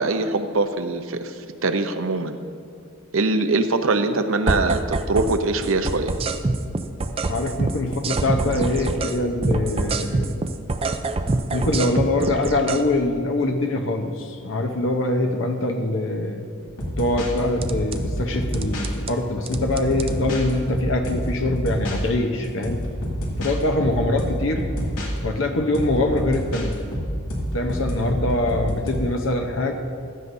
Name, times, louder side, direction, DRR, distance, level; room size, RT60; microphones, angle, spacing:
voice 1, 0.0-1.4 1.6-2.4 3.1-6.1, right 3 dB, 65° right, 8 dB, 0.7 m, -22 dB
sound 1, 4.5-5.4 5.6-9.2 9.4-12.8 17.6-18.0 18.5-19.1 19.5-20.1, right 2 dB, 25° right, 0.4 m, -25 dB
voice 2, 7.3-10.4 11.5-16.4 17.0-22.8 23.4-24.7 25.2-26.8 27.5-29.7, left 2 dB, 60° left, 4 dB, 0.8 m, -23 dB
sound 2, 16.7-18.9 19.5-22.0 22.6-23.5 23.8-25.1 25.7-28.9, equal, 85° left, 2.3 m, -28 dB
15.5 x 12.5 x 2.7 m, 2.3 s
head